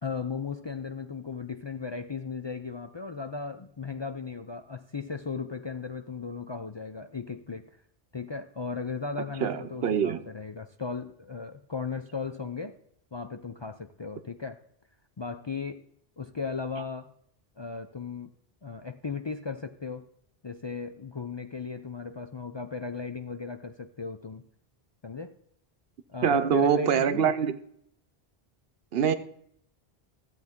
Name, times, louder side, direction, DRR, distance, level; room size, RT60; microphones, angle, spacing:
voice 1, 0.0-7.8 8.1-12.8 13.1-14.6 15.2-15.8 16.2-17.1 17.6-18.3 18.6-20.1 20.4-24.4 25.0-25.4 26.1-27.3, left 5 dB, 40° left, 0.4 m, -36 dB
voice 2, 9.4-10.2 26.2-27.6 28.9-29.1, right 7 dB, 75° right, 1.0 m, -24 dB
14.5 x 7.9 x 3.6 m
omnidirectional pair, 1.0 m